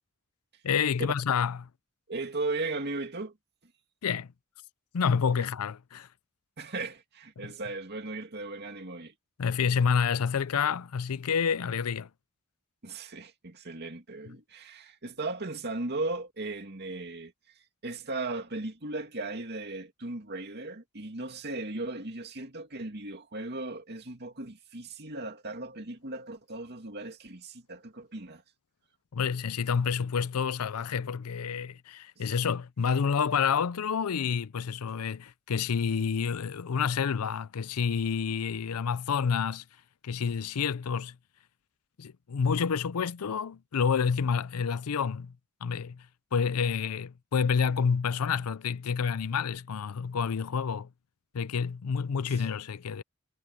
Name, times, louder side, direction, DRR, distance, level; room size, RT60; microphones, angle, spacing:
voice 1, 0.6-1.7 4.0-4.3 4.9-6.1 7.4-7.5 9.4-12.1 29.1-39.6 40.0-41.2 42.0-45.3 45.6-46.0 46.3-50.9 51.3-53.0, left 6 dB, 85° left, 0.5 m, -29 dB
voice 2, 2.1-3.3 6.6-9.1 12.8-17.3 17.8-28.4 32.2-32.3, right 2 dB, 50° right, 2.6 m, -37 dB
head